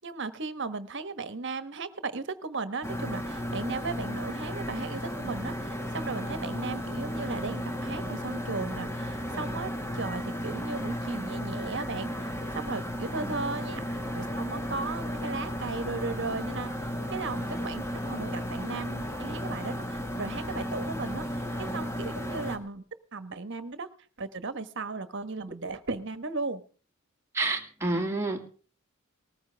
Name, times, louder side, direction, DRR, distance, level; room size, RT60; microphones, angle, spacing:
voice 1, 0.0-12.1 12.5-22.8 23.1-23.9 24.2-26.6, right 3 dB, 55° right, 12 dB, 1.3 m, -36 dB
sound 1, 2.8-22.6, equal, 15° left, 1.8 m, -34 dB
voice 2, 27.3-28.4, right 2 dB, 15° right, 3 dB, 2.1 m, -29 dB
19.5 x 14.5 x 3.5 m, 0.40 s
head